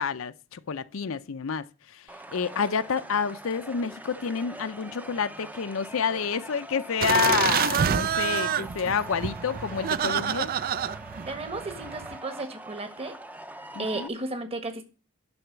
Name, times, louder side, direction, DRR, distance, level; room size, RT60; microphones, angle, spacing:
voice 1, 0.0-1.7 1.9-2.0 2.3-10.5 13.8-14.1, left 6 dB, 70° left, 0.6 m, -28 dB
sound 1, 2.1-14.1, right 1 dB, 10° right, 0.6 m, -43 dB
sound 2, 7.0-12.2, right 8 dB, 45° right, 0.4 m, -28 dB
voice 2, 11.3-13.2 13.8-14.8, right 2 dB, 30° right, 1.5 m, -34 dB
11.5 x 4.1 x 7.9 m
head